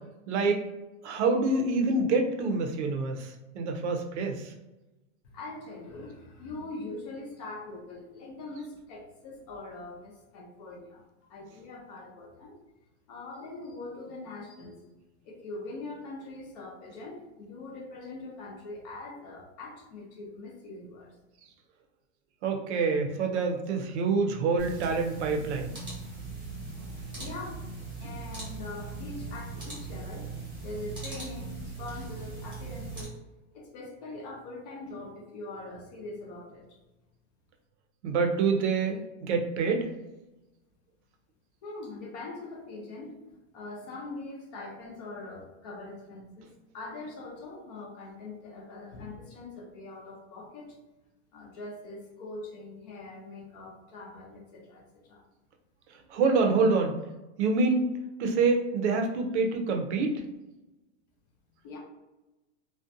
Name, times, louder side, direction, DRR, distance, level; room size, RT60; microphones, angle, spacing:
voice 1, 0.3-0.6 1.0-4.5 22.4-25.7 38.0-39.9 56.1-57.0 57.4-57.9 58.2-60.2, right 4 dB, 70° right, 4 dB, 0.6 m, -26 dB
voice 2, 5.3-11.0 11.3-12.6 13.1-14.8 15.2-21.2 27.2-27.6 28.0-33.1 33.5-36.7 41.6-43.2 43.5-50.8 51.3-55.2 61.6-61.8, left 2 dB, 35° left, -1 dB, 0.5 m, -42 dB
sound 1, 24.6-33.0, right 3 dB, 15° right, 0.9 m, -39 dB
2.4 x 2.1 x 2.5 m, 1.0 s
supercardioid pair, 175°, 35 cm